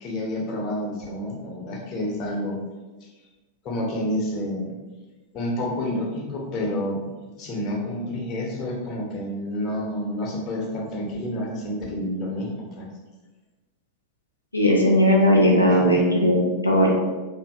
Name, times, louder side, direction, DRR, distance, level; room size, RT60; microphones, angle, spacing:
voice 1, 0.0-2.6 3.0-3.1 3.6-4.7 5.3-7.0 7.4-12.5 12.8-12.9 15.7-15.9, left 1 dB, 35° left, -2 dB, 0.6 m, -29 dB
voice 2, 14.5-17.0, equal, 85° left, -3 dB, 0.4 m, -18 dB
2.6 x 2.5 x 2.4 m, 1.2 s
figure-of-eight pair, 90°, 0 cm